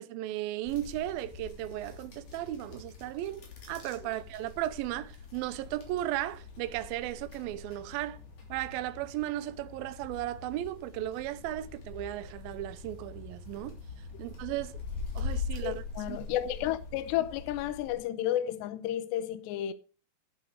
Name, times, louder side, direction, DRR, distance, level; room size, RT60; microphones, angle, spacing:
voice 1, 0.0-8.2 8.5-13.8 14.2-14.8 15.2-15.8 16.1-16.2, right 14 dB, 80° right, 2.1 m, -35 dB
sound 1, 0.7-18.0, left 4 dB, 45° left, 4.2 m, -43 dB
voice 2, 15.6-19.7, left 12 dB, 80° left, 2.8 m, -32 dB
12.0 x 8.2 x 4.7 m
omnidirectional pair, 5.2 m